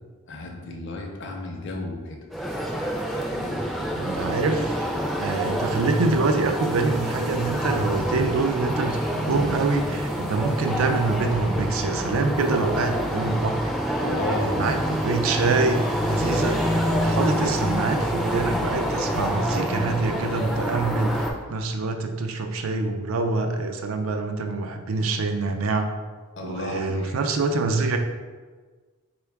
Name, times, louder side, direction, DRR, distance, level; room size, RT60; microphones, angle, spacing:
voice 1, 0.3-2.2 3.3-3.7 14.0-14.6 16.0-16.1 26.4-27.2, left 2 dB, 60° left, 1 dB, 0.5 m, -33 dB
sound 1, 2.3-21.3, equal, ahead, 0.4 m, -27 dB
voice 2, 3.9-4.9 5.2-13.7 14.3-25.9 26.4-28.0, right 3 dB, 75° right, 6 dB, 0.4 m, -25 dB
4.4 x 2.3 x 3.4 m, 1.4 s
head